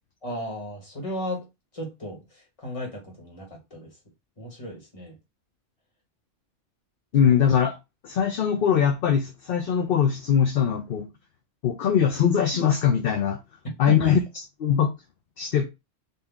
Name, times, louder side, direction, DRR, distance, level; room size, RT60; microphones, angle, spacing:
voice 1, 0.2-1.5 1.7-3.9 4.4-5.2 7.2-7.3 13.6-14.1, equal, 30° left, 1.6 m, -35 dB
voice 2, 7.1-7.8 8.0-11.1 11.6-13.4 13.8-14.2 14.6-14.9 15.4-15.6, left 8 dB, 60° left, 0.7 m, -21 dB
4.2 x 2.7 x 3.5 m
omnidirectional pair, 1.2 m